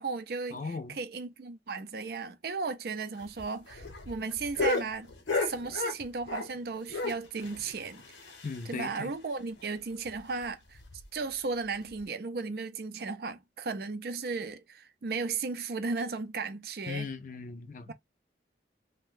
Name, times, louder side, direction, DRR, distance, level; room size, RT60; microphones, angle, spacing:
voice 1, 0.0-5.1 5.4-8.0 8.7-10.8 11.1-17.1 17.9-18.0, right 4 dB, 55° right, 0.5 m, -35 dB
voice 2, 0.5-1.0 8.4-9.1 16.9-17.9, left 4 dB, 45° left, 0.4 m, -38 dB
sound 1, 3.2-6.6 6.9-8.9 9.2-9.3 9.6-9.7 10.1-10.2 10.7-11.0 11.9-12.0, left 3 dB, 90° left, 0.9 m, -34 dB
2.6 x 2.1 x 3.6 m
head